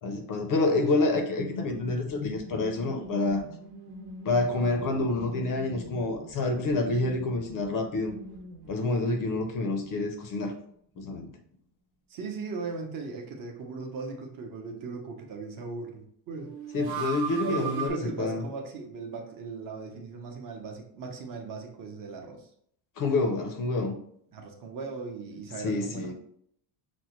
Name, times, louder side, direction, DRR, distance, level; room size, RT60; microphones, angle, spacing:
voice 1, 0.0-3.4 4.2-8.2 8.7-10.5 11.0-11.3 16.7-18.4 23.0-24.0 25.6-26.1, left 2 dB, 45° left, 5 dB, 0.5 m, -28 dB
sound 1, 1.4-9.2 9.4-9.5 16.4-17.9, right 4 dB, 75° right, 0.9 m, -40 dB
voice 2, 12.1-16.5 17.4-22.5 24.3-26.1, right 4 dB, 45° right, 2 dB, 0.7 m, -38 dB
5.9 x 2.1 x 2.9 m, 0.67 s
cardioid pair, 175°, 48 cm